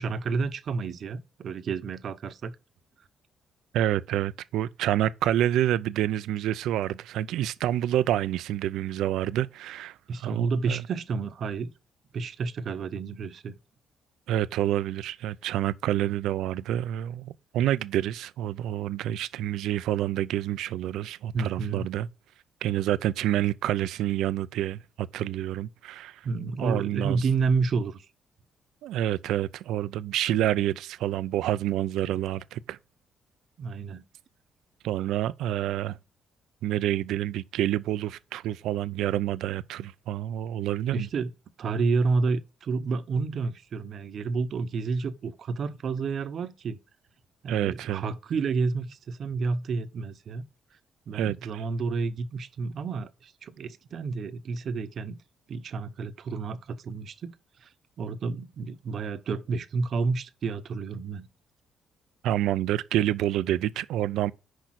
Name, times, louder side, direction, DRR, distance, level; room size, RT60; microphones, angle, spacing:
voice 1, 0.0-2.6 10.1-11.7 12.1-13.5 21.3-21.8 26.2-28.1 33.6-34.0 40.9-41.3 41.6-46.8 47.4-50.5 51.1-55.2 55.5-57.7 58.0-61.3, right 4 dB, 60° right, 0.8 m, -30 dB
voice 2, 3.7-10.8 14.3-22.1 22.6-26.2 26.6-27.2 28.8-32.8 34.8-36.0 36.6-41.1 47.5-48.0 51.1-51.6 62.2-64.3, right 12 dB, 85° right, 0.4 m, -28 dB
6.4 x 5.1 x 5.9 m
cardioid pair, 90°, 0 cm